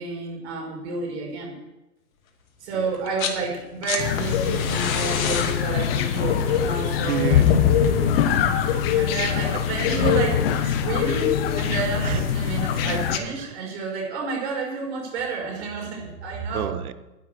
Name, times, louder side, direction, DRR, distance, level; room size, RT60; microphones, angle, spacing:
voice 1, 0.0-1.5 2.6-7.4 8.9-16.8, right 4 dB, 40° right, 0 dB, 5.8 m, -30 dB
sound 1, 2.9-3.4 3.7-8.5 9.8-9.9, left 6 dB, 55° left, 2.3 m, -31 dB
sound 2, 4.0-13.2, left 9 dB, 35° left, 1.3 m, -22 dB
voice 2, 7.1-7.5 7.9-8.8 12.0-12.2 13.4-13.5 16.5-16.9, right 10 dB, 60° right, 13 dB, 1.2 m, -30 dB
11.0 x 10.5 x 6.7 m, 1.0 s
hypercardioid pair, 140°, 48 cm